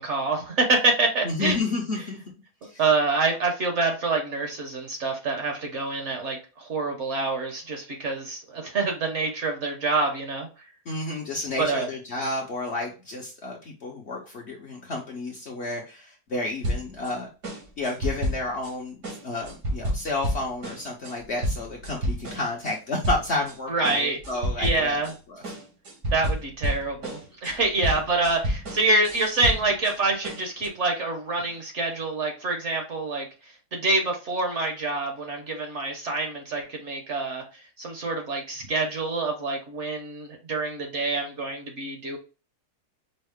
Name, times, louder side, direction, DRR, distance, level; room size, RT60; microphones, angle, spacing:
voice 1, 0.0-1.6 2.6-10.5 11.6-11.9 23.7-24.2 24.6-25.1 26.1-33.3 33.7-37.4 37.8-42.2, right 3 dB, 50° right, 3 dB, 1.0 m, -26 dB
voice 2, 1.2-2.2 2.6-2.8 10.9-17.3 17.8-25.0 25.3-25.4 27.8-28.0, left 2 dB, 55° left, -1 dB, 0.8 m, -31 dB
sound 1, 16.6-17.1 17.4-18.7 19.0-22.8 23.0-23.6 23.8-25.2 25.4-30.0 30.2-30.7, equal, 80° right, 2.1 m, -30 dB
5.4 x 2.0 x 3.4 m, 0.32 s
omnidirectional pair, 1.8 m